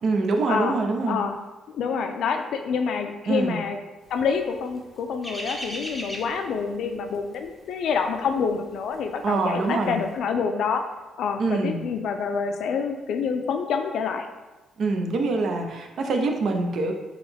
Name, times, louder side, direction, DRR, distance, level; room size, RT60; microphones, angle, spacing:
voice 1, 0.0-1.2 3.3-3.6 9.2-10.0 11.4-11.8 14.8-16.9, right 3 dB, 60° right, 3 dB, 0.6 m, -24 dB
voice 2, 1.1-1.4 1.7-3.8 4.1-10.8 11.2-14.3, left 6 dB, 75° left, 6 dB, 0.4 m, -27 dB
sound 1, 4.3-9.4 9.6-9.9, equal, ahead, 0.7 m, -37 dB
3.8 x 3.0 x 3.4 m, 1.1 s
cardioid pair, 90°, 0 cm